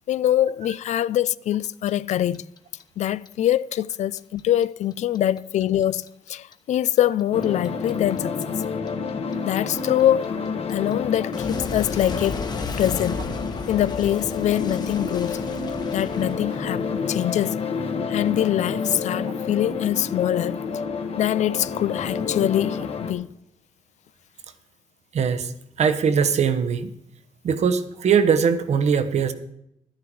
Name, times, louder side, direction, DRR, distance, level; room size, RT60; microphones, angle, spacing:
voice 1, 0.1-2.4 3.0-8.6 9.4-10.3 10.7-12.5 12.7-13.2 13.7-15.4 15.9-20.6 21.2-23.3, left 12 dB, 70° left, 0.4 m, -24 dB
Clock, 1.6-4.6 4.9-7.9 8.2-17.0, left 3 dB, 35° left, 1.2 m, -34 dB
sound 1, 7.3-23.1, left 5 dB, 55° left, 1.3 m, -29 dB
voice 2, 25.1-25.5 25.8-26.9 27.4-29.3, right 6 dB, 65° right, 1.0 m, -21 dB
11.5 x 10.5 x 4.7 m
cardioid pair, 110°, 12 cm